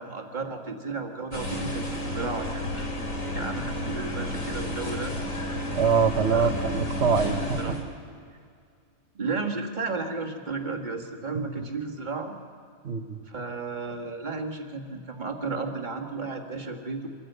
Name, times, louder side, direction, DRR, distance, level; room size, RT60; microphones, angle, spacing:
voice 1, 0.0-2.9 3.3-5.1 6.3-6.5 7.2-7.7 9.1-12.3 13.3-17.1, right 3 dB, 35° right, 2 dB, 1.6 m, -33 dB
sound 1, 1.3-7.8, left 1 dB, 65° left, 2.9 m, -31 dB
voice 2, 5.7-7.8 12.8-13.2, right 6 dB, 50° right, 8 dB, 1.3 m, -24 dB
24.5 x 14.5 x 8.0 m, 2.2 s
omnidirectional pair, 1.5 m